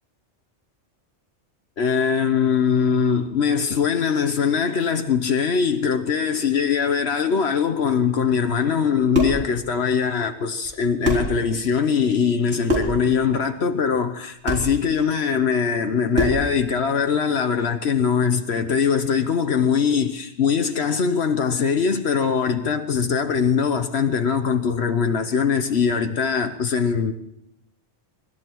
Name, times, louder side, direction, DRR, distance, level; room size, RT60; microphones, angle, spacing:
voice 1, 1.8-27.1, left 6 dB, 70° left, 1.2 m, -22 dB
sound 1, 8.9-9.5 10.6-10.7 11.0-11.4 12.7-13.0 14.5-14.7 16.1-16.5, equal, 75° right, 4.2 m, -23 dB
24.0 x 13.0 x 4.6 m
omnidirectional pair, 1.2 m